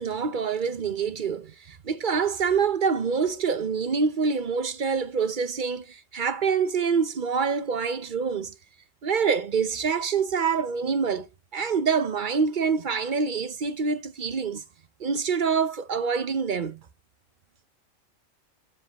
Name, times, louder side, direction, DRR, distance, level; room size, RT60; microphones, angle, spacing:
voice 1, 0.0-8.5 9.0-11.3 11.5-14.6 15.0-16.8, right 5 dB, 45° right, 0.8 m, -26 dB
12.5 x 4.6 x 3.0 m
omnidirectional pair, 1.3 m